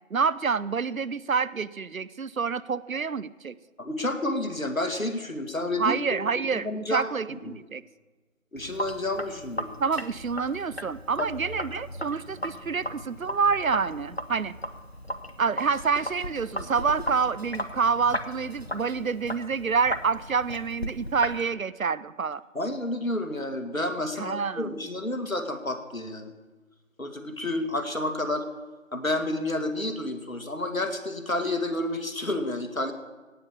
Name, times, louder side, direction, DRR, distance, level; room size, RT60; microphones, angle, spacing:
voice 1, 0.1-3.5 5.8-7.8 9.8-14.5 15.4-22.4 24.2-24.8, right 5 dB, 90° right, 19 dB, 0.7 m, -27 dB
voice 2, 3.8-6.2 6.5-7.1 7.4-7.6 8.5-9.7 11.2-11.3 22.5-26.3 27.0-28.5 28.9-32.9, left 1 dB, 85° left, 7 dB, 2.0 m, -30 dB
Sink (filling or washing), 8.6-21.4, equal, 50° left, 0.9 m, -36 dB
17.0 x 5.9 x 8.2 m, 1.2 s
figure-of-eight pair, 180°, 40 cm